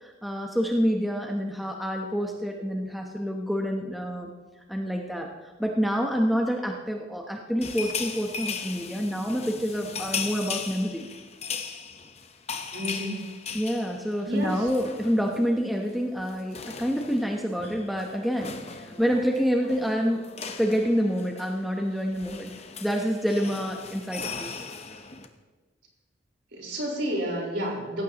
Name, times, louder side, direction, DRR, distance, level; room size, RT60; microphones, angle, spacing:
voice 1, 0.0-4.3 4.7-5.3 5.6-11.1 13.5-20.2 20.6-22.5 22.8-24.5, equal, ahead, 0 dB, 0.8 m, -27 dB
sound 1, 7.6-15.5 15.7-15.9 16.2-25.3, left 5 dB, 30° left, 0.9 m, -38 dB
voice 2, 12.7-13.3 14.2-14.7 26.5-28.0, equal, 60° right, -2 dB, 4.5 m, -30 dB
17.5 x 16.0 x 3.0 m, 1.3 s
head